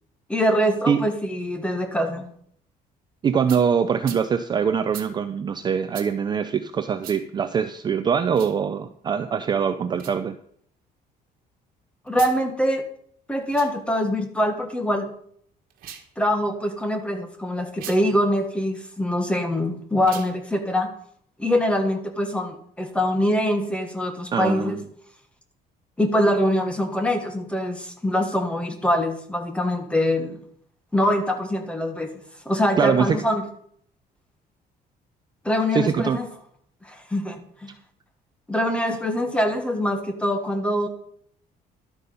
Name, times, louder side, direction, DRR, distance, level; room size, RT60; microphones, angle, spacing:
voice 1, 0.3-2.3 12.1-12.8 13.3-15.1 16.2-20.9 21.4-24.8 26.0-30.4 30.9-32.1 32.4-33.4 35.4-36.3 36.8-37.7 38.5-40.9, left 1 dB, 5° left, 6 dB, 1.3 m, -24 dB
voice 2, 3.2-10.4 24.3-24.8 32.8-33.2 35.7-36.2, right 7 dB, 25° right, 9 dB, 0.5 m, -23 dB
sound 1, 3.5-3.6 4.0-4.2 4.9-5.1 5.9-6.1 7.0-7.2 8.3-8.6 9.9-10.2 12.1-12.4 13.4-13.7 15.7-16.1 17.7-18.0 20.0-20.3, right 10 dB, 60° right, 1.7 m, -39 dB
12.0 x 8.1 x 5.4 m, 0.63 s
cardioid pair, 175°, 17 cm